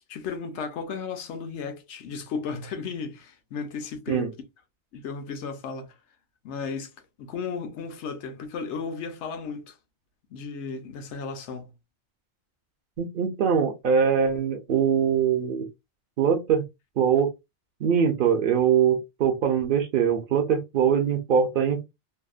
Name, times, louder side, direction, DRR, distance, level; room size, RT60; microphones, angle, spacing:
voice 1, 0.1-4.3 4.9-6.0 6.4-6.9 7.2-9.8 10.3-11.7, left 5 dB, 80° left, 0.9 m, -34 dB
voice 2, 13.0-15.7 16.2-16.6 17.0-17.3 17.8-21.8, right 7 dB, 60° right, 0.6 m, -22 dB
2.7 x 2.0 x 2.3 m
omnidirectional pair, 1.2 m